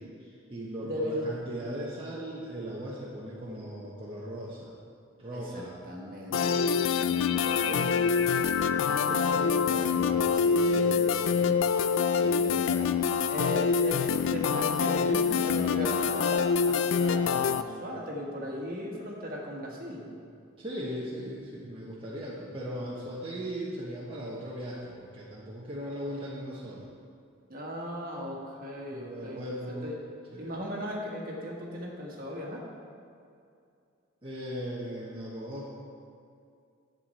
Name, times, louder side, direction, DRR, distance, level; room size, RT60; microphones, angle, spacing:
voice 1, 0.0-4.7 5.2-5.8 20.6-26.9 28.9-29.8 30.3-30.6 34.2-35.7, equal, 25° right, -6 dB, 1.1 m, -38 dB
voice 2, 0.8-1.3 5.3-11.7 12.2-12.9 13.3-20.1 27.5-29.9 30.4-32.6, equal, 45° right, -2 dB, 1.7 m, -37 dB
sound 1, 6.3-17.6, left 6 dB, 70° left, 0.3 m, -26 dB
11.0 x 7.8 x 4.2 m, 2.4 s
head